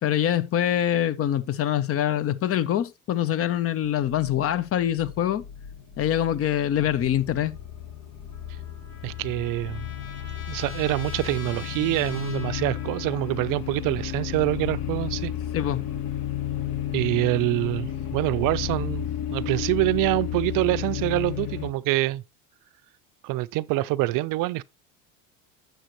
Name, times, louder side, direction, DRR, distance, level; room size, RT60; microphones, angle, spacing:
voice 1, 0.0-5.5 6.0-7.5 15.5-15.8, left 11 dB, 35° left, 0.6 m, -24 dB
sound 1, 4.0-21.7, left 10 dB, 50° left, 1.3 m, -33 dB
Trumpet, 8.3-13.5, left 5 dB, 90° left, 1.7 m, -43 dB
voice 2, 9.0-9.9 10.5-15.3 16.9-22.2 23.2-24.6, right 18 dB, 50° right, 0.5 m, -25 dB
7.8 x 6.4 x 3.0 m
supercardioid pair, 105°, 43 cm